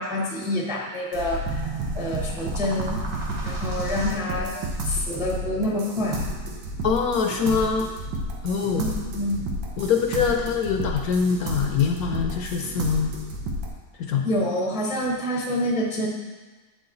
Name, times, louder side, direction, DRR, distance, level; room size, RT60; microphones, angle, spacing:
voice 1, 0.0-3.0 3.4-6.2 8.8-9.4 14.2-16.1, left 1 dB, 5° right, -2 dB, 0.4 m, -27 dB
sound 1, 1.1-13.7, right 1 dB, 85° right, 1.6 m, -31 dB
voice 2, 6.8-7.9 8.4-8.8 9.8-13.1 14.1-14.3, left 6 dB, 70° left, 3 dB, 1.0 m, -23 dB
7.7 x 4.9 x 3.9 m, 1.3 s
omnidirectional pair, 1.9 m